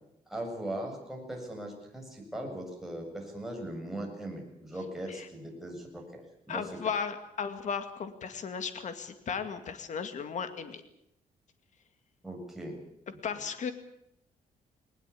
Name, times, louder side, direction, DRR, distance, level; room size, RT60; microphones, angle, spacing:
voice 1, 0.3-6.2 6.5-6.7 12.2-12.8, right 1 dB, ahead, 0 dB, 7.6 m, -39 dB
voice 2, 6.5-10.8 13.2-13.7, left 6 dB, 55° left, 9 dB, 2.2 m, -35 dB
20.5 x 20.5 x 8.6 m, 0.80 s
cardioid pair, 130°, 15 cm